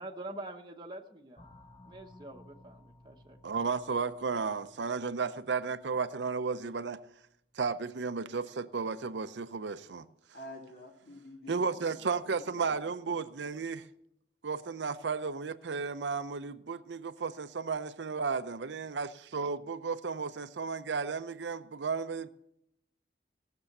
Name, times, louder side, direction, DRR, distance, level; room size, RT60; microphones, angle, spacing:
voice 1, 0.0-1.5 1.9-3.4, right 2 dB, 25° right, 0.9 m, -45 dB
sound 1, 1.4-7.7, left 1 dB, 30° left, 1.2 m, -59 dB
voice 2, 3.4-7.0 7.5-10.1 11.5-13.8 14.4-22.3, right 5 dB, 90° right, 0.6 m, -34 dB
voice 3, 10.3-13.3, left 1 dB, 60° left, 2.6 m, -49 dB
17.5 x 7.0 x 6.5 m
head